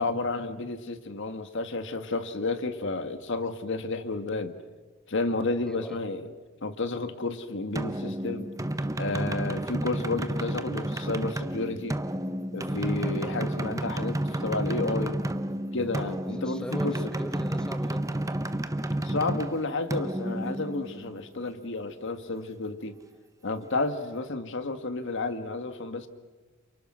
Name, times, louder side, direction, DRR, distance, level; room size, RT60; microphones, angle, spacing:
voice 1, 0.0-4.6 5.1-6.3 6.6-8.5 8.9-12.0 12.5-15.2 15.7-17.0 19.0-23.0 23.4-26.1, left 3 dB, 65° left, 8 dB, 1.7 m, -31 dB
voice 2, 5.7-6.0 16.4-18.2, equal, 5° left, 7 dB, 1.0 m, -39 dB
sound 1, 7.7-21.3, right 1 dB, 15° right, 0.9 m, -31 dB
29.0 x 28.5 x 6.3 m, 1.3 s
head